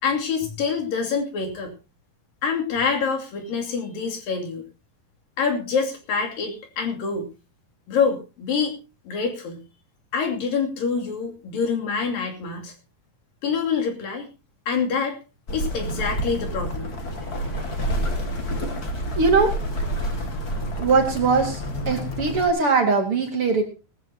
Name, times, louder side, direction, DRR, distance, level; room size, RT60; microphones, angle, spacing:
voice 1, 0.0-1.7 2.4-4.6 5.4-7.3 7.9-8.8 9.1-9.6 10.1-12.7 13.4-14.3 14.7-15.2 15.5-16.9, left 5 dB, 75° left, 2 dB, 4.4 m, -26 dB
sound 1, 15.5-22.5, equal, 30° left, 2.0 m, -28 dB
voice 2, 19.1-19.5 20.7-21.6 21.9-23.6, right 4 dB, 45° right, 4 dB, 2.3 m, -20 dB
19.0 x 14.0 x 2.9 m, 0.30 s
omnidirectional pair, 4.0 m